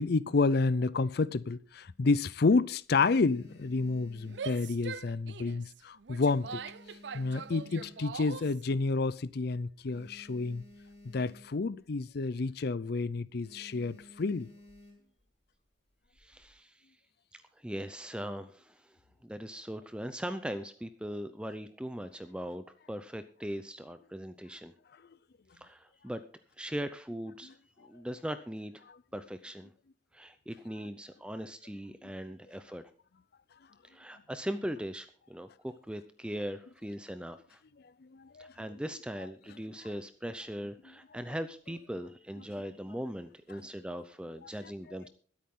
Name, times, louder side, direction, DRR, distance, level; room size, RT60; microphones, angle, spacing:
voice 1, 0.0-6.6 7.1-10.6 11.1-14.5 38.1-38.5, left 3 dB, 60° left, 0.5 m, -29 dB
sound 1, 1.6-2.3 2.7-5.2 5.5-5.9 6.2-8.4 8.9-9.0 9.1-9.3 9.6-11.8 12.1-12.4 12.7-12.9 13.4-15.2 15.9-16.5, left 1 dB, 35° left, 5.8 m, -55 dB
Female speech woman speaking / Yell, 4.2-8.6, right 6 dB, 70° right, 0.5 m, -43 dB
voice 2, 16.2-16.9 17.3-19.0 19.2-24.7 25.6-26.2 26.6-27.5 27.8-28.8 29.1-29.7 30.1-32.8 33.8-37.6 38.4-45.1, equal, 5° right, 0.6 m, -40 dB
22.0 x 8.7 x 3.7 m
head